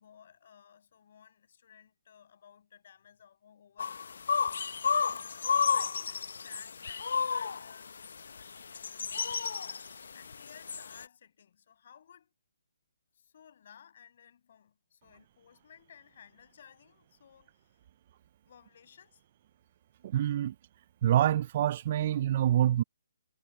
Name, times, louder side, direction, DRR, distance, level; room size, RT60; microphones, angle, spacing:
voice 1, 0.0-12.3 13.1-17.8 18.5-19.2, left 8 dB, 45° left, 7.0 m, -58 dB
sound 1, 3.8-11.0, left 6 dB, 65° left, 0.6 m, -32 dB
voice 2, 20.0-20.5 21.0-22.8, right 11 dB, 35° right, 0.4 m, -26 dB
hypercardioid pair, 165°, 0 cm